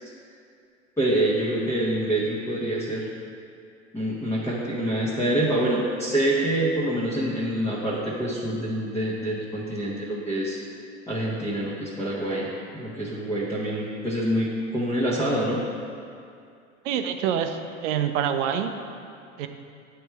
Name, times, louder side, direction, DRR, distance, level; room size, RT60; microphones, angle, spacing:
voice 1, 1.0-3.0 3.9-10.6 11.1-12.5 12.7-15.6, right 1 dB, 5° left, -8 dB, 0.9 m, -26 dB
voice 2, 16.8-18.7 19.4-19.5, right 8 dB, 75° right, 7 dB, 0.6 m, -26 dB
8.3 x 3.4 x 4.5 m, 2.5 s
hypercardioid pair, 90°, 37 cm